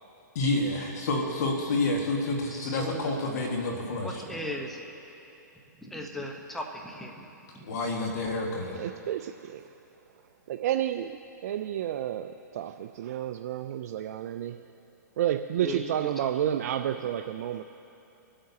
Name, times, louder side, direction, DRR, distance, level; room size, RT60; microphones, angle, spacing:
voice 1, 0.4-4.2 7.6-8.8, left 2 dB, 60° left, 0 dB, 1.7 m, -29 dB
voice 2, 2.5-3.1 4.0-4.8 5.8-7.1 7.5-7.6 15.6-16.3, left 1 dB, 5° left, 1 dB, 0.9 m, -37 dB
voice 3, 8.8-9.6 10.5-14.6 15.2-17.6, right 11 dB, 55° right, 7 dB, 0.4 m, -31 dB
24.5 x 8.7 x 2.8 m, 2.9 s
hypercardioid pair, 135°, 10 cm